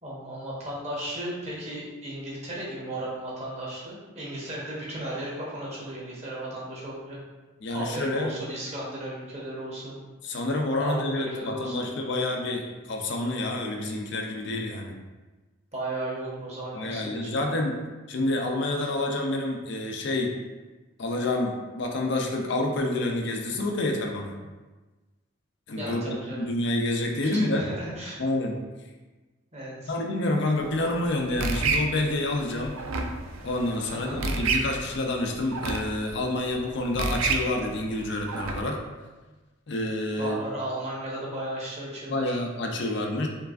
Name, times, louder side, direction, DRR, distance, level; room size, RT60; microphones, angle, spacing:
voice 1, 0.0-7.2 7.7-10.0 10.8-11.9 15.7-17.6 25.7-26.4 27.1-28.2 29.5-29.9 33.8-34.2 40.2-42.4, right 1 dB, 30° right, -5 dB, 1.0 m, -35 dB
voice 2, 7.6-8.3 10.2-14.9 16.8-17.8 18.1-20.3 21.0-24.4 25.7-27.7 28.2-28.5 29.9-32.8 33.4-38.8 39.7-40.4 42.1-43.3, left 2 dB, 55° left, 1 dB, 0.5 m, -28 dB
sound 1, 30.6-38.6, right 3 dB, 85° right, 0.4 m, -31 dB
4.5 x 3.2 x 2.5 m, 1.2 s
head